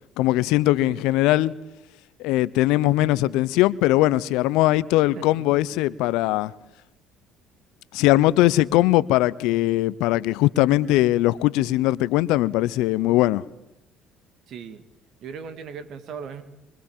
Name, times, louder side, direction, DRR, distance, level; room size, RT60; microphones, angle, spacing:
voice 1, 0.2-1.5 2.2-6.5 7.9-13.4, left 16 dB, 75° left, 0.8 m, -20 dB
voice 2, 14.5-14.8 15.2-16.4, right 6 dB, 60° right, 2.6 m, -37 dB
25.0 x 24.5 x 7.5 m
hypercardioid pair, 60°, 0 cm